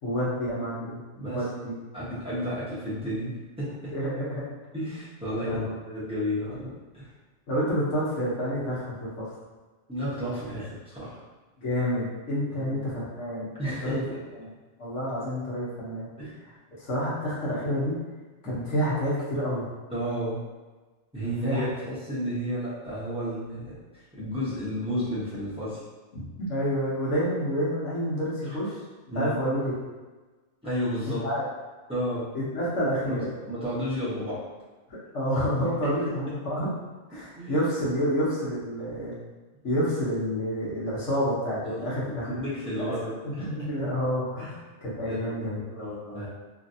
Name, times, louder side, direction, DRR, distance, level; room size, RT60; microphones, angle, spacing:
voice 1, 0.0-1.0 1.3-1.7 3.9-4.5 5.3-5.8 7.5-9.3 11.6-14.0 14.4-14.5 14.8-16.1 16.8-18.0 18.4-19.6 21.2-21.7 26.1-28.8 29.1-29.8 31.1-31.4 32.3-33.3 34.9-36.7 37.1-39.1 39.6-42.3 42.7-42.9 43.2-46.2, equal, 90° left, -8 dB, 1.3 m, -29 dB
voice 2, 1.1-3.9 4.7-7.1 9.9-11.2 12.5-12.9 13.6-14.1 16.2-16.3 18.4-18.6 19.9-20.4 21.1-25.8 29.1-29.3 30.6-31.2 31.9-32.3 33.0-33.2 33.5-34.5 35.8-35.9 37.4-37.7 41.6-41.9 42.2-43.5 44.4-44.5 45.0-46.3, equal, 5° right, -11 dB, 0.9 m, -32 dB
3.0 x 2.5 x 2.6 m, 1.3 s
omnidirectional pair, 1.2 m